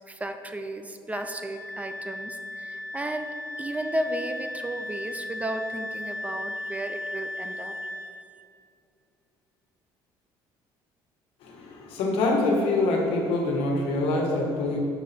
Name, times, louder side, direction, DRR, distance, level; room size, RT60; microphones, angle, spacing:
voice 1, 0.1-3.3 3.6-7.8, right 1 dB, 15° right, 7 dB, 0.5 m, -34 dB
Wind instrument woodwind instrument, 1.1-8.2, left 1 dB, 20° left, 0.7 m, -36 dB
voice 2, 11.4-14.8, left 2 dB, 75° left, 0 dB, 1.5 m, -25 dB
6.7 x 4.0 x 6.0 m, 2.5 s
cardioid pair, 105°, 10 cm